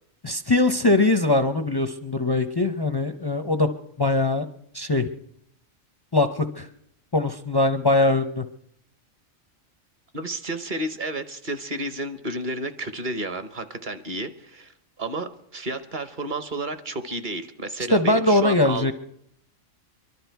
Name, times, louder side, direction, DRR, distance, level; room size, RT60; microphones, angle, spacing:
voice 1, 0.2-3.7 4.0-4.5 4.7-5.1 6.1-6.7 7.1-8.4 17.9-18.9, left 2 dB, 35° left, 9 dB, 0.4 m, -21 dB
voice 2, 10.1-14.7 15.0-18.9, right 2 dB, 45° right, 10 dB, 0.9 m, -31 dB
23.0 x 12.0 x 4.6 m, 0.73 s
omnidirectional pair, 1.3 m